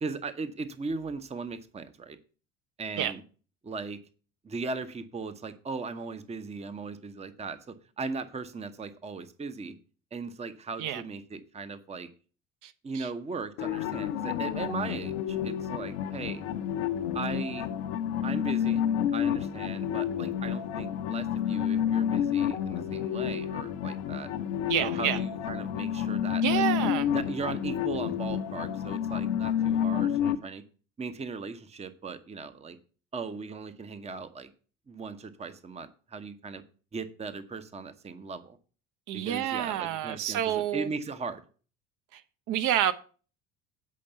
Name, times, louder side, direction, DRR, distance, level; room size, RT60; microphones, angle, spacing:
voice 1, 0.0-2.2 2.8-3.2 3.6-4.0 4.4-9.7 10.1-12.1 12.8-16.4 17.1-17.7 18.2-18.8 19.1-24.3 24.8-26.7 27.1-30.6 31.0-32.8 33.1-34.5 34.9-36.6 36.9-38.6 39.1-41.4, right 4 dB, 15° right, 0.8 m, -38 dB
voice 2, 12.6-13.1 24.7-25.2 26.4-27.1 39.1-40.9 42.1-42.2 42.5-42.9, right 11 dB, 50° right, 1.0 m, -29 dB
sound 1, 13.6-30.3, left 9 dB, 65° left, 0.9 m, -29 dB
8.5 x 5.2 x 6.8 m
figure-of-eight pair, 60°, 40 cm